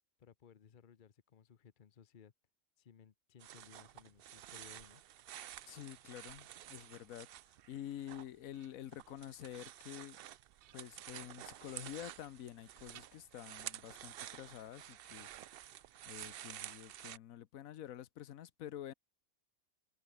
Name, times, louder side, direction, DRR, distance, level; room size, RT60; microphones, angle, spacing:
voice 1, 0.2-2.3 2.8-5.0, left 7 dB, 40° left, 0.9 m, -61 dB
sound 1, 3.4-8.3 8.6-17.2, right 12 dB, 65° right, 0.6 m, -51 dB
voice 2, 5.7-7.3 7.7-10.2 10.7-15.3 15.6-15.8 16.1-18.9, left 11 dB, 90° left, 1.2 m, -48 dB
sound 2, 8.3-9.0 9.4-10.2 10.6-11.0 11.7-12.6 12.9-13.8, right 13 dB, 85° right, 1.1 m, -65 dB
omnidirectional pair, 1.4 m